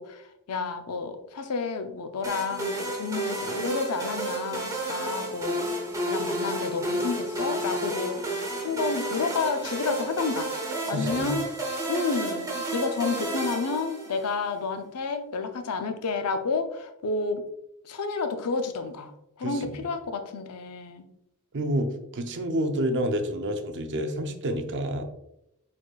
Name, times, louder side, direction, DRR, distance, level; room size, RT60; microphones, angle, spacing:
voice 1, 0.0-10.5 10.9-11.5 11.9-17.4 17.8-21.1, left 4 dB, 85° left, 7 dB, 0.5 m, -30 dB
sound 1, 2.2-14.4, right 1 dB, 15° right, 0.9 m, -31 dB
voice 2, 10.9-11.4 19.4-19.7 21.5-25.0, equal, 55° right, 7 dB, 0.5 m, -29 dB
4.6 x 4.2 x 2.3 m, 0.83 s
head